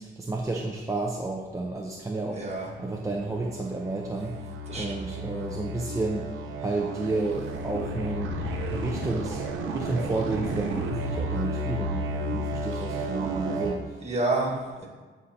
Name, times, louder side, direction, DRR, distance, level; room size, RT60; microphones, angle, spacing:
voice 1, 0.0-2.4 2.8-4.4 4.7-6.3 6.6-9.4 9.7-14.0, right 3 dB, 15° right, -1 dB, 0.6 m, -31 dB
voice 2, 2.3-2.7 4.7-5.0 12.8-12.9 14.0-14.9, right 2 dB, 35° right, -3 dB, 1.7 m, -29 dB
sound 1, 2.4-13.8, right 1 dB, 85° right, 0.7 m, -33 dB
9.5 x 4.2 x 2.8 m, 1.4 s
cardioid pair, 90°, 20 cm